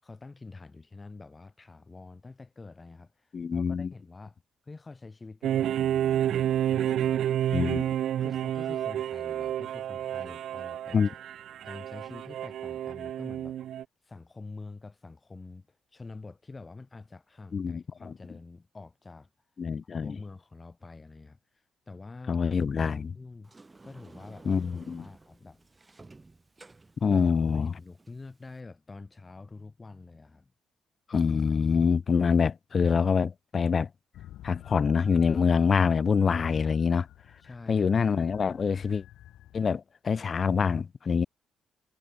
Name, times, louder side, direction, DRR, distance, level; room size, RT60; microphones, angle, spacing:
voice 1, 0.0-4.4 4.6-7.2 8.2-11.2 11.6-13.6 14.0-19.3 20.0-21.4 21.9-22.4 22.9-23.5 23.8-24.5 25.0-25.7 27.1-30.5 37.4-38.0, left 3 dB, 25° left, 6.7 m, -47 dB
voice 2, 3.3-3.9 7.5-7.8 10.9-11.1 17.5-18.1 19.6-20.2 22.3-23.1 24.4-25.1 27.0-27.7 31.1-33.9 34.4-37.1 37.7-39.0 39.5-41.3, left 6 dB, 40° left, 0.4 m, -25 dB
sound 1, 5.4-13.8, right 11 dB, 70° right, 0.5 m, -30 dB
Sliding door, 23.4-28.6, right 3 dB, 20° right, 1.8 m, -53 dB
sound 2, 34.1-39.7, left 13 dB, 80° left, 1.4 m, -51 dB
cardioid pair, 90°, 0 cm